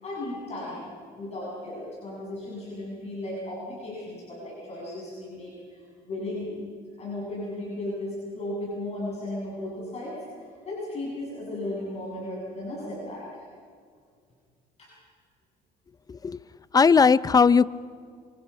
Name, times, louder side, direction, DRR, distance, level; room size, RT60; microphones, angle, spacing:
voice 1, 0.0-6.6 7.0-13.3 14.8-14.9, left 1 dB, 40° left, -6 dB, 7.6 m, -35 dB
voice 2, 16.7-17.7, left 5 dB, 20° left, 18 dB, 0.5 m, -18 dB
26.5 x 24.0 x 5.9 m, 2.1 s
cardioid pair, 110°, 17 cm